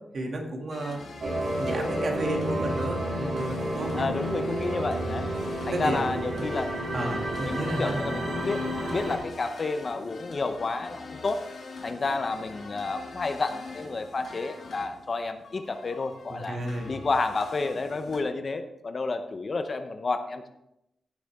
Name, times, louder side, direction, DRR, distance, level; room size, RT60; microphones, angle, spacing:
voice 1, 0.1-1.0 1.6-4.1 5.7-6.0 6.9-8.0 16.3-16.9, right 1 dB, 50° right, 1 dB, 2.3 m, -32 dB
sound 1, 0.7-18.2, left 3 dB, 70° left, 2.5 m, -44 dB
sound 2, 1.2-9.2, right 1 dB, 75° right, 3.9 m, -31 dB
voice 2, 3.9-5.3 5.7-11.4 11.8-16.6 16.9-20.5, left 3 dB, 40° left, 8 dB, 0.8 m, -30 dB
15.5 x 6.7 x 3.6 m, 0.85 s
wide cardioid pair, 130°, 0 cm